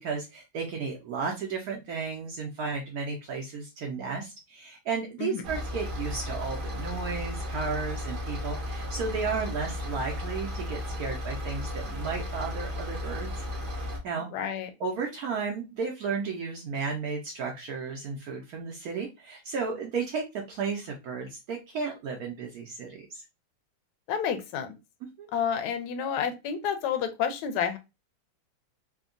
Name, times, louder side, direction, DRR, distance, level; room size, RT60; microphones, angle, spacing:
voice 1, 0.0-13.3 13.8-14.3 14.8-23.2 25.2-25.3, right 5 dB, 70° right, 0 dB, 0.9 m, -33 dB
sound 1, 5.4-14.0, left 1 dB, 90° right, 0.4 m, -34 dB
voice 2, 14.3-14.7 24.1-24.8 25.3-27.8, left 8 dB, 70° left, 8 dB, 1.0 m, -29 dB
3.5 x 2.2 x 2.4 m, 0.25 s
omnidirectional pair, 2.1 m